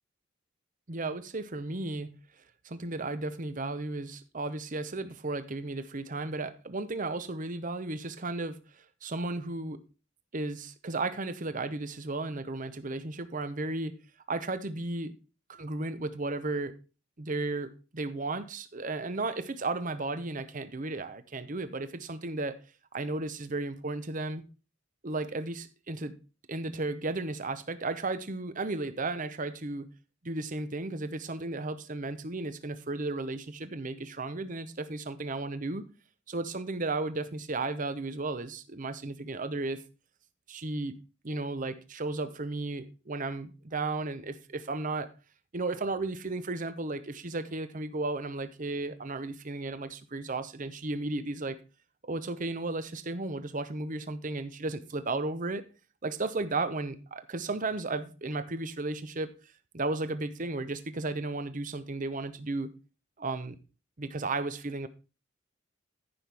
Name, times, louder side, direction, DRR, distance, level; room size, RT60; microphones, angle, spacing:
voice 1, 0.9-2.2 2.6-9.8 10.3-14.0 14.3-15.1 15.5-16.8 17.2-22.6 22.9-24.4 25.0-26.2 26.5-29.9 30.2-35.9 36.3-39.8 40.5-41.0 41.2-45.1 45.5-51.6 52.0-55.6 56.0-59.3 59.7-62.7 63.2-63.6 64.0-64.9, right 2 dB, 40° right, 0.8 m, -34 dB
14.0 x 5.9 x 3.4 m
head